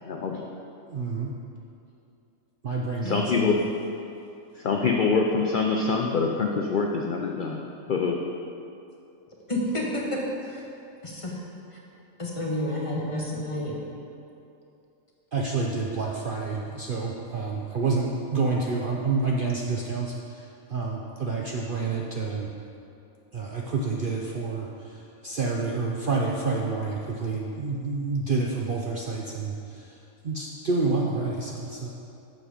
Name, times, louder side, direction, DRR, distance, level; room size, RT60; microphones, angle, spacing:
voice 1, 0.0-0.5 3.0-3.6 4.6-8.2, left 4 dB, 65° left, 1 dB, 0.5 m, -25 dB
voice 2, 0.9-1.4 2.6-3.5 15.3-22.5 23.3-30.0 30.2-31.9, right 4 dB, 55° right, -2 dB, 0.6 m, -28 dB
voice 3, 9.5-10.6 11.0-11.4 11.7-11.8 12.2-13.7, left 1 dB, 25° left, -3 dB, 1.0 m, -30 dB
7.5 x 6.4 x 5.0 m, 2.6 s
omnidirectional pair, 1.5 m